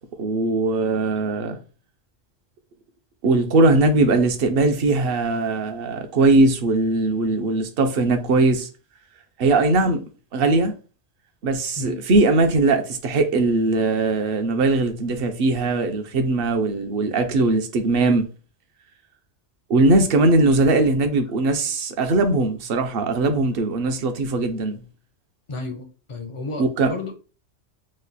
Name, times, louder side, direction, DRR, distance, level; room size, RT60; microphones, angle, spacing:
voice 1, 0.2-1.6 3.2-8.7 9.4-10.0 10.3-10.7 11.4-18.3 19.7-24.8 26.6-26.9, right 2 dB, 60° right, 0.7 m, -20 dB
voice 2, 25.5-27.1, left 3 dB, 45° left, 0.4 m, -32 dB
3.1 x 2.2 x 3.9 m
omnidirectional pair, 1.2 m